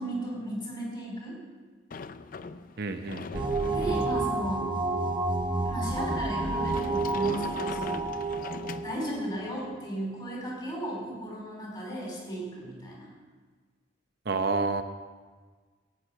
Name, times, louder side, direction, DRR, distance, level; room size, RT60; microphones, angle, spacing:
voice 1, 0.0-1.4 3.7-4.7 5.6-8.1 8.8-13.1, right 1 dB, 25° left, -3 dB, 4.4 m, -35 dB
Sliding door, 1.9-9.4, left 4 dB, 50° left, 0.5 m, -42 dB
voice 2, 2.8-3.7 14.3-14.8, right 3 dB, 60° right, 7 dB, 0.8 m, -30 dB
sound 1, 3.3-9.8, right 3 dB, 25° right, 0.9 m, -30 dB
14.0 x 6.7 x 9.0 m, 1.5 s
head